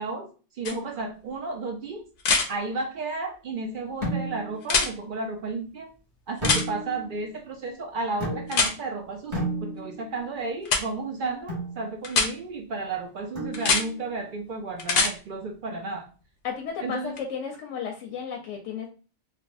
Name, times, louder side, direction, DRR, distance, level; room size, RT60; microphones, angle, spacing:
voice 1, 0.0-2.1 2.5-5.9 6.3-16.1 16.8-17.2, right 3 dB, 60° right, 4 dB, 0.5 m, -33 dB
sound 1, 0.6-0.7 2.2-2.5 4.6-4.9 6.4-6.6 8.5-8.7 10.6-10.8 12.0-12.3 13.5-13.8 14.8-15.1 17.2-17.3, left 4 dB, 60° left, 0.6 m, -22 dB
sound 2, 4.0-4.6 6.4-7.1 8.2-8.8 9.3-10.1 11.5-11.8 13.3-14.0, right 1 dB, 25° right, 1.4 m, -32 dB
voice 2, 16.4-18.9, left 6 dB, 90° left, 1 dB, 0.9 m, -33 dB
3.3 x 2.1 x 2.4 m, 0.36 s
omnidirectional pair, 1.2 m